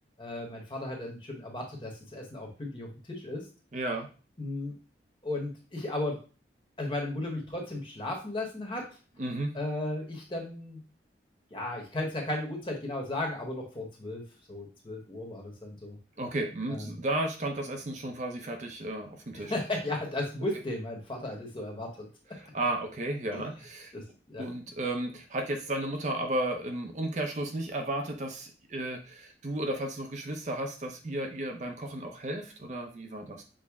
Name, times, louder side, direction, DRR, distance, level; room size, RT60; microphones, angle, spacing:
voice 1, 0.2-3.5 4.4-4.7 5.2-6.2 6.8-8.9 9.5-10.8 11.5-14.2 14.5-16.0 16.7-17.0 19.4-22.1 23.3-23.4 23.9-24.4, left 2 dB, 30° left, 0 dB, 1.0 m, -35 dB
voice 2, 3.7-4.1 9.2-9.6 16.2-19.5 22.4-23.9 24.4-33.4, right 1 dB, 40° right, 4 dB, 0.6 m, -33 dB
6.2 x 2.1 x 3.5 m, 0.35 s
head